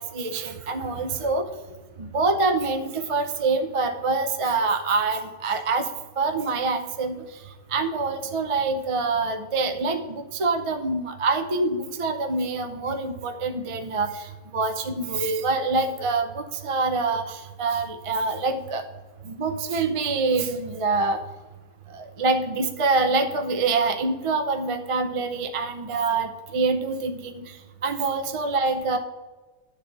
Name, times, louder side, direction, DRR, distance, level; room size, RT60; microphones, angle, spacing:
voice 1, 0.0-1.5 2.0-5.9 6.2-7.2 7.7-18.8 19.2-21.2 21.9-27.5 27.8-29.0, right 3 dB, 35° right, 6 dB, 0.5 m, -25 dB
10.5 x 4.2 x 6.6 m, 1.2 s
omnidirectional pair, 1.3 m